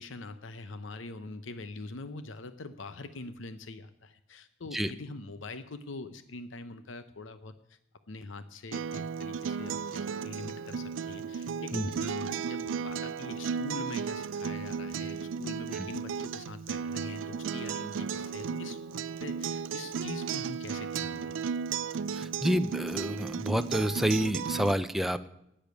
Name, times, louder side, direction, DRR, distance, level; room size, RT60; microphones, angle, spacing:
voice 1, 0.0-7.8 8.1-21.3, left 3 dB, 85° left, 11 dB, 0.7 m, -43 dB
Acoustic guitar, 8.7-24.7, right 6 dB, 85° right, 0.4 m, -35 dB
voice 2, 22.1-25.3, equal, ahead, 9 dB, 0.5 m, -29 dB
10.0 x 8.8 x 9.4 m, 0.82 s
head